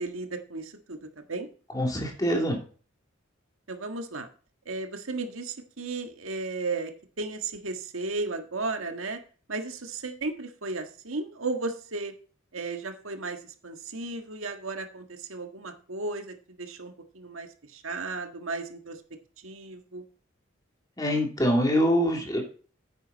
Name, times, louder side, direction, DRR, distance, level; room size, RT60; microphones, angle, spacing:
voice 1, 0.0-1.5 3.7-4.3 4.6-9.2 9.5-12.1 12.5-19.0 19.4-20.0, right 3 dB, 85° right, 6 dB, 1.7 m, -35 dB
voice 2, 1.7-2.6 21.0-22.4, equal, 20° left, 1 dB, 2.9 m, -24 dB
9.6 x 9.0 x 4.1 m, 0.40 s
head